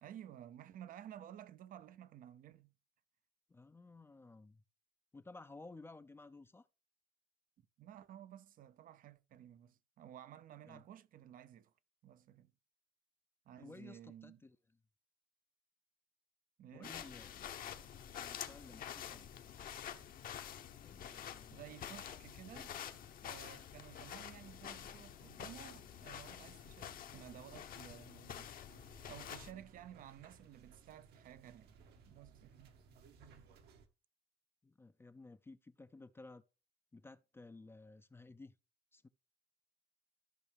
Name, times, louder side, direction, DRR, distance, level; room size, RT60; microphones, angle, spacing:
voice 1, 0.0-2.8 7.8-11.7 12.0-12.5 13.5-14.4 16.6-17.0 21.5-22.8 23.2-28.5 28.9-31.8 32.1-32.8, right 11 dB, 55° right, 0.5 m, -54 dB
voice 2, 3.5-4.6 5.1-6.7 10.7-10.8 13.6-14.6 16.7-17.6 18.2-19.4 20.8-21.6 34.6-36.4 36.9-38.6 38.9-39.1, left 3 dB, 15° left, 0.4 m, -55 dB
sound 1, 16.8-29.5, left 9 dB, 55° left, 1.0 m, -48 dB
sound 2, 28.7-33.9, right 5 dB, 75° right, 1.3 m, -62 dB
13.5 x 5.5 x 3.4 m
cardioid pair, 110°, 17 cm